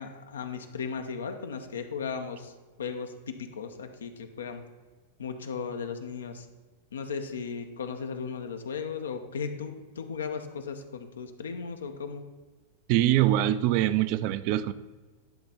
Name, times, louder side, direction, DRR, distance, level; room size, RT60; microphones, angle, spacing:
voice 1, 0.0-2.5 2.8-4.6 5.2-6.5 6.9-12.2, left 5 dB, 85° left, 6 dB, 0.8 m, -36 dB
voice 2, 12.9-14.7, right 13 dB, 50° right, 13 dB, 0.4 m, -23 dB
10.0 x 3.5 x 5.7 m, 1.3 s
hypercardioid pair, 105°, 0 cm